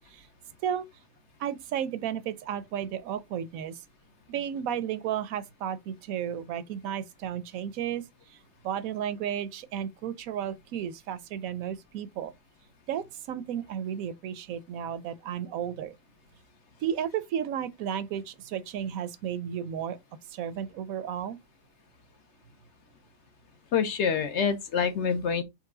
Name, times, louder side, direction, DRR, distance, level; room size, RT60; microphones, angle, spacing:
voice 1, 1.4-3.8 4.3-8.4 8.6-12.3 12.9-16.0 16.8-20.0 20.3-21.4, right 9 dB, 75° right, 1.0 m, -33 dB
voice 2, 23.7-25.4, left 6 dB, 60° left, 0.9 m, -26 dB
4.6 x 3.1 x 3.7 m
omnidirectional pair, 1.5 m